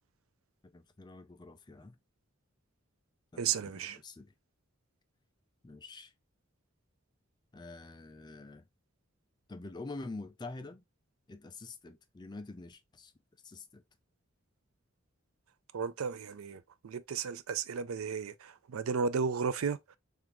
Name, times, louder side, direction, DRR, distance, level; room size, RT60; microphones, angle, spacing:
voice 1, 0.6-2.0 3.3-4.3 5.6-6.1 7.5-8.7 9.5-10.8 11.3-13.1 13.4-13.8, left 3 dB, 20° left, 0.4 m, -46 dB
voice 2, 3.4-4.0 15.7-20.0, right 6 dB, 75° right, 0.4 m, -34 dB
3.6 x 3.4 x 2.9 m
head